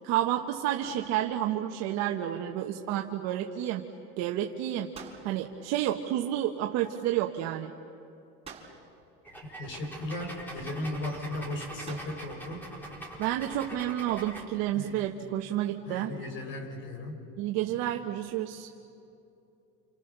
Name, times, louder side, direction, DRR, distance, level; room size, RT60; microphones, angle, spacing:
voice 1, 0.0-3.8 4.2-4.9 5.2-7.7 13.2-16.1 17.4-18.7, right 12 dB, 60° right, 2 dB, 1.4 m, -30 dB
sound 1, 0.8-1.7 4.9-5.8 8.4-9.2 11.9-12.5, right 5 dB, 20° right, 4.4 m, -49 dB
sound 2, 9.2-14.4, right 1 dB, 5° left, 4.5 m, -43 dB
voice 2, 9.6-12.7 14.7-15.0 15.9-17.2, left 1 dB, 40° left, 4 dB, 5.6 m, -36 dB
30.0 x 28.5 x 6.9 m, 2.7 s
cardioid pair, 135°, 30 cm